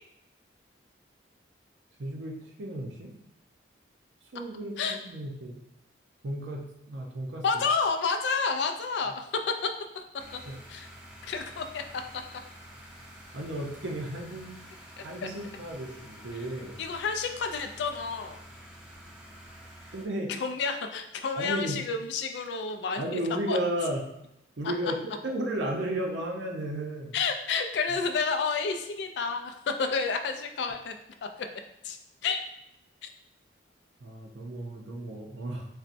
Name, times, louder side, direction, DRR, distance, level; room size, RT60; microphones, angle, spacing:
voice 1, 2.0-3.1 4.3-5.5 6.2-7.4 10.4-10.6 13.3-14.5 15.0-16.8 19.9-20.3 21.4-21.8 23.0-24.0 24.6-27.2 34.0-35.7, right 1 dB, 75° right, 1 dB, 0.6 m, -34 dB
voice 2, 7.4-9.3 9.9-10.0 10.7-10.9 11.2-12.2 15.0-15.1 16.8-18.4 20.4-23.2 23.5-23.6 27.1-31.0 31.2-31.3 31.8-32.4 33.0-33.1, left 5 dB, 70° left, 6 dB, 0.3 m, -30 dB
sound 1, 10.2-20.1, equal, 5° right, 0.3 m, -49 dB
4.1 x 2.2 x 2.5 m, 0.82 s
head